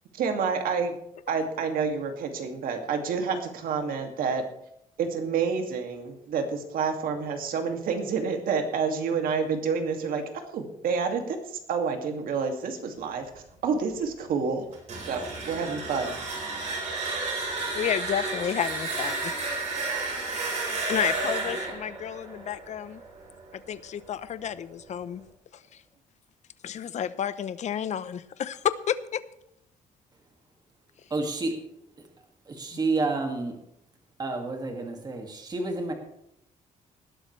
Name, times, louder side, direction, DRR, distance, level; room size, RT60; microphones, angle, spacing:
voice 1, 0.1-1.0 1.3-4.4 5.0-11.4 11.7-14.6 15.1-16.1, right 5 dB, 80° right, 5 dB, 2.4 m, -28 dB
sound 1, 14.7-23.5, right 3 dB, 55° right, 4.7 m, -32 dB
voice 2, 17.7-19.4 20.4-20.5 20.9-23.0 23.5-25.2 25.5-25.8 26.6-29.2, left 9 dB, 55° left, 14 dB, 0.8 m, -31 dB
voice 3, 31.1-31.6 32.5-33.6 34.2-35.9, right 3 dB, 30° right, 3 dB, 2.2 m, -29 dB
19.0 x 12.0 x 3.3 m, 0.77 s
cardioid pair, 130°, 15 cm